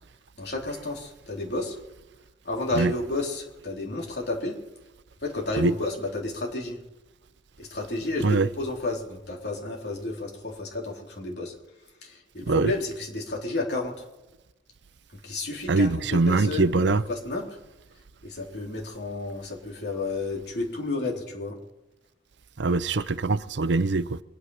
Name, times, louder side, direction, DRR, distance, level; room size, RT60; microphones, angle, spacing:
voice 1, 0.4-1.8 2.4-4.6 5.2-6.8 7.6-11.5 12.0-14.0 15.2-17.4 18.2-21.6, left 2 dB, 60° left, 3.7 m, -31 dB
voice 2, 15.7-17.0 22.6-24.2, right 3 dB, 70° right, 0.6 m, -23 dB
23.5 x 9.4 x 5.6 m
head